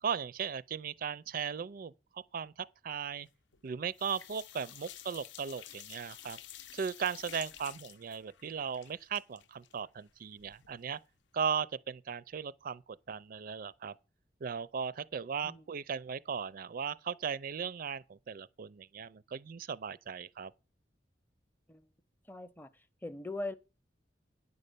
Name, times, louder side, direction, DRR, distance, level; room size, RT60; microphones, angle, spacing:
voice 1, 0.0-3.3 3.6-6.4 6.7-11.0 11.3-13.9 14.4-20.5, right 6 dB, 50° right, 0.4 m, -37 dB
sound 1, 3.3-3.7 3.9-10.8 11.1-11.2 11.5-11.6, left 11 dB, 80° left, 0.6 m, -51 dB
voice 2, 22.3-22.7 23.0-23.6, left 2 dB, 10° left, 0.6 m, -40 dB
9.6 x 5.4 x 6.7 m
head